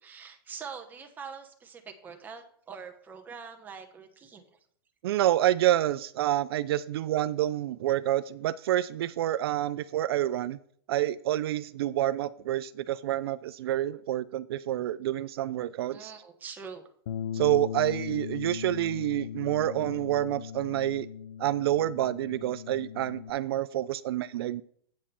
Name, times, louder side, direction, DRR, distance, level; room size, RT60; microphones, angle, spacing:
voice 1, 0.0-4.4 15.9-16.9, right 6 dB, 15° right, 4 dB, 1.0 m, -44 dB
voice 2, 5.0-10.6 10.9-16.1 17.3-21.1 21.4-24.6, right 13 dB, 75° right, 15 dB, 0.4 m, -28 dB
Bass guitar, 17.1-23.3, left 8 dB, 75° left, 0.6 m, -38 dB
8.4 x 7.3 x 4.3 m, 0.62 s
supercardioid pair, 150°, 13 cm